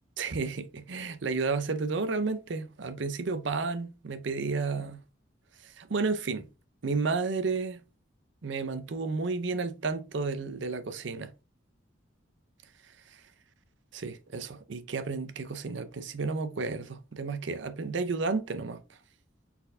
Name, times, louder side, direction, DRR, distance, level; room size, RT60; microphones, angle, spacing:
voice 1, 0.2-5.0 5.6-6.5 6.8-7.8 8.4-11.3 12.8-13.2 13.9-19.0, right 4 dB, 65° right, 0.6 m, -32 dB
4.3 x 4.2 x 2.6 m
head